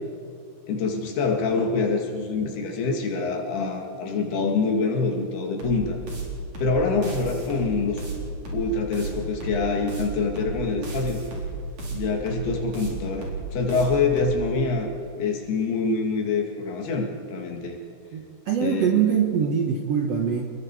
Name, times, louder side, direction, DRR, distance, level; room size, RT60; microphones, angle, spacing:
voice 1, 0.7-6.0 6.6-8.0 8.5-11.2 11.9-14.9 15.2-17.8 18.6-19.0, left 4 dB, 85° left, 2 dB, 4.2 m, -25 dB
sound 1, 5.6-14.4, right 4 dB, 45° right, 5.2 m, -33 dB
voice 2, 18.1-20.5, right 7 dB, 65° right, 2 dB, 1.7 m, -23 dB
28.5 x 21.0 x 4.8 m, 2.3 s
omnidirectional pair, 4.4 m